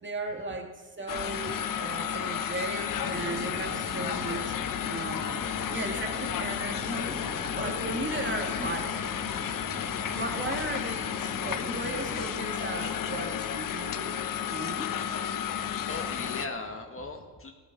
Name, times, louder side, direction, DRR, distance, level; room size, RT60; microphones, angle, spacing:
voice 1, 0.0-4.6 4.9-9.1 10.1-14.2 14.5-15.0, right 2 dB, 25° right, 3 dB, 2.2 m, -36 dB
sound 1, 1.1-16.5, left 8 dB, 45° left, 1.0 m, -32 dB
sound 2, 2.9-12.3, left 2 dB, 75° left, 4.5 m, -41 dB
voice 2, 15.5-17.5, left 3 dB, 30° left, 3 dB, 1.8 m, -39 dB
15.5 x 13.5 x 4.1 m, 1.3 s
supercardioid pair, 85°, 45 cm